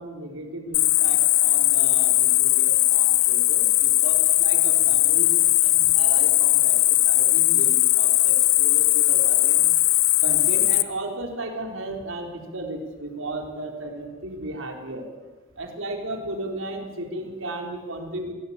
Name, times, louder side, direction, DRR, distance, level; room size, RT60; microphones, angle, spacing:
voice 1, 0.0-6.8 7.0-9.6 10.2-15.1 15.6-18.3, right 2 dB, 70° right, 3 dB, 4.1 m, -35 dB
Cricket, 0.7-10.8, left 16 dB, 85° left, 1.1 m, -19 dB
26.0 x 17.5 x 8.8 m, 1.4 s
head